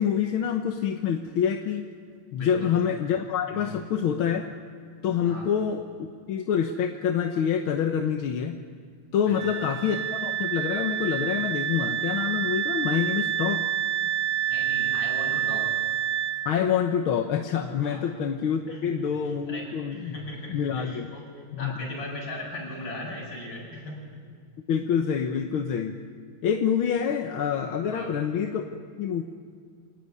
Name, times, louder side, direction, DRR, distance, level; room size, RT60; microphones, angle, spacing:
voice 1, 0.0-1.8 2.3-4.5 5.0-8.6 9.1-13.6 16.5-20.2 20.5-21.1 21.5-21.9 24.7-26.0 26.4-29.2, left 8 dB, 90° left, 5 dB, 1.9 m, -26 dB
voice 2, 2.4-2.7 3.5-3.8 5.2-5.5 9.3-9.6 14.5-15.7 17.8-18.1 18.7-21.3 21.6-24.2 27.9-28.1, left 1 dB, 65° left, -2 dB, 8.4 m, -38 dB
Wind instrument woodwind instrument, 9.3-16.4, right 11 dB, 50° right, 3.8 m, -28 dB
26.5 x 18.5 x 9.5 m, 2.1 s
omnidirectional pair, 2.2 m